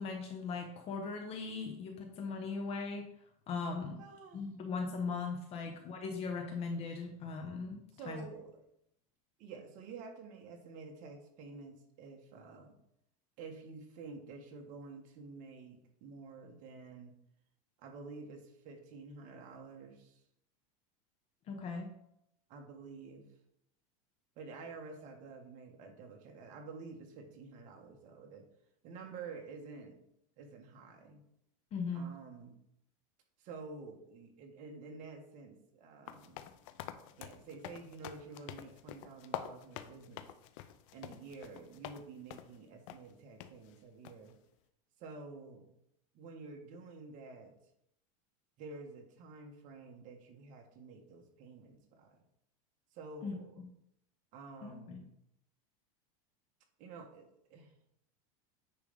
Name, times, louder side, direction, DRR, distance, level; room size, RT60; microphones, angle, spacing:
voice 1, 0.0-3.1 3.5-4.0 4.3-8.2 21.5-21.9 31.7-32.1 53.2-53.3 54.6-55.1, left 4 dB, 35° left, 2 dB, 1.0 m, -39 dB
voice 2, 4.0-4.7 5.6-5.8 7.9-8.6 9.4-12.7 13.4-17.1 17.8-20.2 22.5-23.3 24.4-28.4 28.8-30.0 30.4-31.2 31.9-32.6 33.4-36.5 37.2-40.3 40.9-44.3 45.0-45.7 46.1-47.5 48.6-52.2 52.9-53.6 54.3-55.1 56.8-57.7, right 4 dB, 45° right, 2 dB, 1.6 m, -50 dB
sound 1, 36.1-42.0 42.3-42.6 42.9-43.0 43.4-43.5 44.0-44.3, left 11 dB, 60° left, 0.7 m, -46 dB
9.4 x 3.4 x 5.3 m, 0.75 s
supercardioid pair, 145°, 18 cm